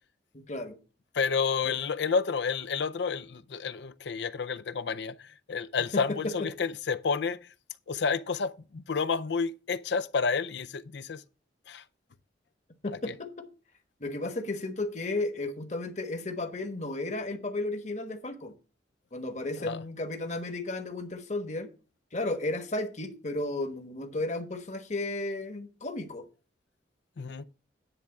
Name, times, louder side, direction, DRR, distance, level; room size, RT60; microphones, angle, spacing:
voice 1, 0.3-0.8 1.6-1.8 5.9-6.5 12.8-13.5 14.0-18.5 19.1-21.7 22.1-26.3, left 2 dB, 40° left, 1.2 m, -34 dB
voice 2, 1.1-7.4 7.9-11.2 11.7-11.8 13.1-13.2 19.6-19.8 27.2-27.4, left 5 dB, 70° left, 0.5 m, -30 dB
10.0 x 3.6 x 7.0 m
head